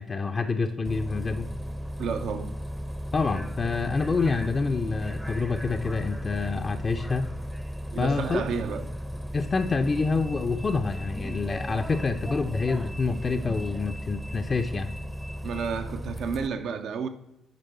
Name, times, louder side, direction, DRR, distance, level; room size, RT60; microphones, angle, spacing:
voice 1, 0.0-1.5 3.1-7.3 8.0-8.4 9.3-14.9, left 4 dB, 35° left, 0.5 m, -27 dB
Bus, 0.8-16.5, equal, 5° right, 0.6 m, -35 dB
voice 2, 2.0-2.5 7.9-8.8 15.4-17.1, right 6 dB, 60° right, 0.5 m, -31 dB
9.3 x 5.2 x 4.2 m
hypercardioid pair, 45°, 0 cm